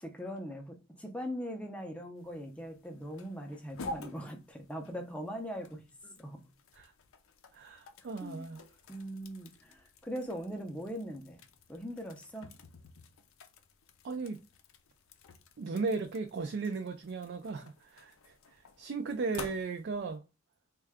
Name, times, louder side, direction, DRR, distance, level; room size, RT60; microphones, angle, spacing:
voice 1, 0.0-6.5 8.0-8.6 8.9-11.4 11.7-12.5, equal, 5° left, 0.5 m, -41 dB
sound 1, 2.2-20.2, left 2 dB, 70° left, 0.5 m, -51 dB
voice 2, 7.5-8.6 14.0-14.4 15.6-20.2, right 4 dB, 55° right, 0.3 m, -36 dB
3.6 x 2.3 x 3.4 m
head